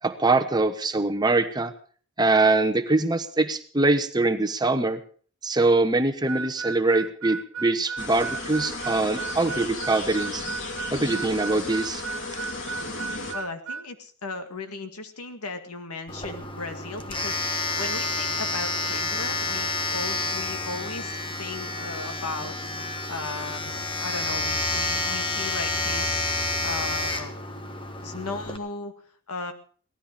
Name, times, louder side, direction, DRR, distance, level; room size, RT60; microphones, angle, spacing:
voice 1, 0.0-1.7 2.2-5.0 5.4-10.4 10.9-12.0, right 2 dB, 20° right, 8 dB, 1.0 m, -23 dB
Harmonica, 6.3-13.9, right 5 dB, 70° right, 0.6 m, -34 dB
sound 1, 8.0-13.3, left 2 dB, 55° left, 3.5 m, -34 dB
voice 2, 13.3-17.5 17.8-22.5 23.1-26.2 26.6-27.4 28.0-28.9 29.3-29.5, left 3 dB, 90° left, 7 dB, 2.0 m, -36 dB
Domestic sounds home sounds, 16.1-28.6, left 2 dB, 20° left, 1.4 m, -29 dB
17.5 x 13.0 x 5.2 m, 0.43 s
head